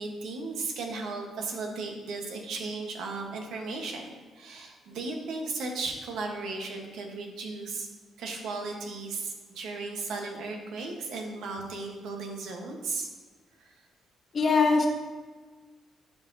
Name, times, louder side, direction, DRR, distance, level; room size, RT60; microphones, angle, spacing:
voice 1, 0.0-7.9 8.2-13.1 13.6-13.7, right 3 dB, 80° right, 2 dB, 1.1 m, -36 dB
voice 2, 14.3-14.9, left 4 dB, 40° left, 2 dB, 1.2 m, -22 dB
11.0 x 4.7 x 2.7 m, 1.4 s
cardioid pair, 90°, 0 cm